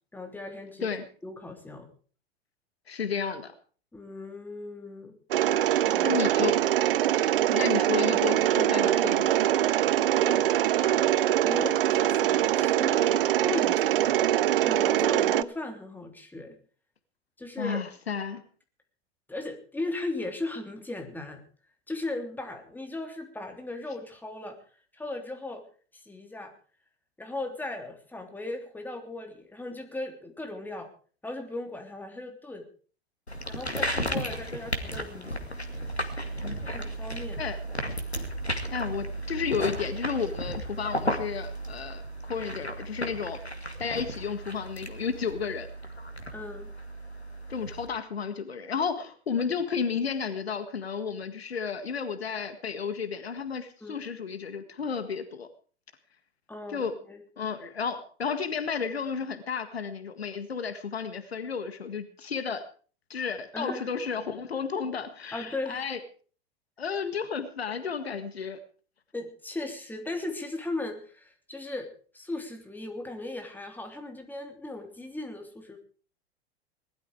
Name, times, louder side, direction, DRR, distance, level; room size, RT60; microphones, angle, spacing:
voice 1, 0.1-0.9 1.2-1.9 3.9-5.1 5.8-6.2 10.1-10.4 10.6-11.2 11.4-14.2 14.5-16.6 17.4-17.9 19.3-21.4 21.9-24.6 24.9-25.6 26.0-26.5 27.2-30.9 31.2-32.6 33.5-35.4 36.6-37.4 46.3-46.7 53.8-54.0 56.5-57.2 63.5-63.9 65.3-65.8 69.1-71.9 72.1-75.8, left 2 dB, 5° left, 4 dB, 3.2 m, -37 dB
voice 2, 2.9-3.5 6.0-6.6 7.5-9.5 17.6-18.4 36.4-36.6 37.4-37.6 38.7-42.0 42.3-43.4 43.8-45.7 47.5-55.5 56.7-57.0 57.4-62.6 63.1-66.0 66.8-68.6, left 6 dB, 75° left, 10 dB, 1.8 m, -32 dB
Mechanisms, 5.3-15.4, right 12 dB, 60° right, 0.7 m, -23 dB
sound 1, 33.3-47.9, equal, 90° left, 2.2 m, -34 dB
19.5 x 13.0 x 4.8 m, 0.41 s
figure-of-eight pair, 90°, 32 cm